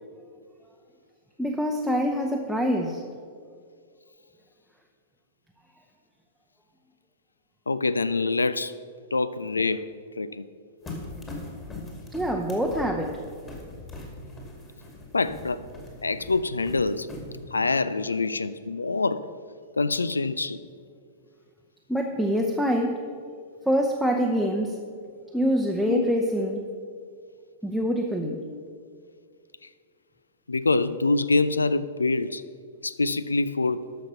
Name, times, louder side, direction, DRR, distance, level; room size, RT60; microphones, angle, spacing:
voice 1, 1.4-3.0 12.1-13.2 21.9-23.0 23.7-24.8 25.3-26.7 27.6-28.5, equal, ahead, 0.8 m, -25 dB
voice 2, 7.7-8.8 9.1-9.9 10.2-10.5 12.7-12.8 15.1-15.6 16.0-17.1 17.5-19.3 19.8-20.6 25.9-26.1 30.5-32.4 32.8-33.9, left 3 dB, 80° left, 0.4 m, -25 dB
sound 1, 10.8-17.6, left 2 dB, 20° left, 2.5 m, -41 dB
13.0 x 6.1 x 5.5 m
figure-of-eight pair, 100°, 0 cm